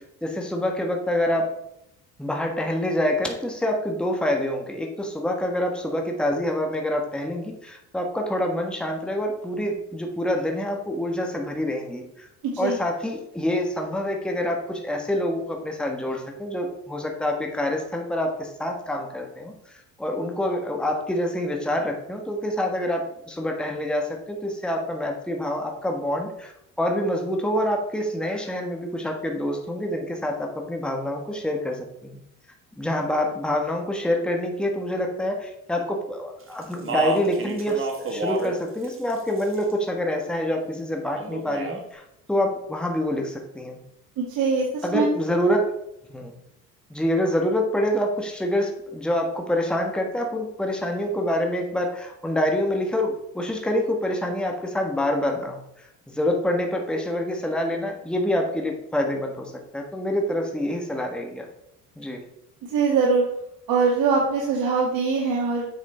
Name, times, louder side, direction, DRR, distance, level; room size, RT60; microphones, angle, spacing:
voice 1, 0.2-1.5 2.2-12.3 12.6-19.5 20.0-26.5 26.8-32.2 32.8-42.0 42.3-43.8 44.8-45.7 46.1-46.3 46.9-61.5 62.0-62.2, left 1 dB, ahead, 1 dB, 1.4 m, -26 dB
voice 2, 12.4-12.8 44.2-45.1 62.6-63.2 63.7-65.7, right 4 dB, 60° right, -3 dB, 2.1 m, -22 dB
Speech, 36.6-38.6 38.8-39.7 41.2-41.8, right 3 dB, 30° right, 1.9 m, -30 dB
8.1 x 6.3 x 4.4 m, 0.81 s
supercardioid pair, 95°, 39 cm